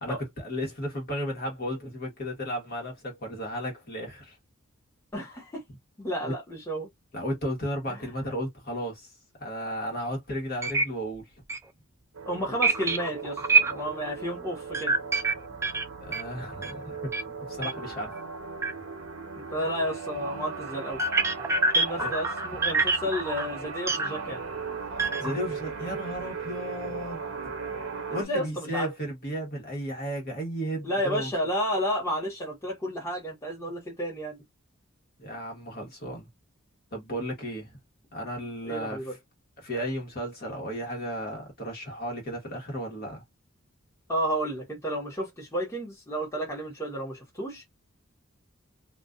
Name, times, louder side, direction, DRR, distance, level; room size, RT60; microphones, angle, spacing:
voice 1, 0.0-4.4 6.3-6.4 7.1-9.1 9.4-11.3 16.0-17.1 17.5-18.1 21.9-22.1 24.9-27.5 28.1-31.3 35.2-36.3 36.9-37.7 38.1-39.2 39.6-43.2, equal, 45° left, 1.2 m, -34 dB
voice 2, 5.1-5.6 6.0-6.9 7.9-8.0 12.2-14.9 19.4-21.0 21.7-24.4 28.1-28.9 30.8-34.4 38.6-39.1 44.1-47.6, equal, 15° left, 1.1 m, -31 dB
sound 1, 10.1-10.2 10.6-10.8 11.2-11.3 11.5-11.6 12.6-14.0 14.7-16.8 17.1-17.3 17.6-17.7 18.1-18.2 18.6-18.7 19.6-19.7 20.9-24.1 24.9-25.5 25.9-26.2, right 3 dB, 15° right, 0.3 m, -26 dB
sound 2, 12.1-28.3, right 5 dB, 75° right, 0.8 m, -38 dB
2.4 x 2.3 x 2.4 m
head